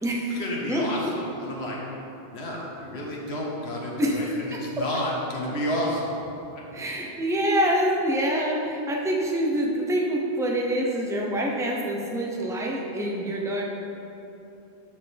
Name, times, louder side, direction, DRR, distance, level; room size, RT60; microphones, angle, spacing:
voice 1, 0.3-1.8 2.3-6.1, left 1 dB, 90° left, -4 dB, 1.5 m, -31 dB
voice 2, 6.7-13.6, equal, 5° right, -1 dB, 0.7 m, -26 dB
13.0 x 4.7 x 3.4 m, 3.0 s
omnidirectional pair, 1.1 m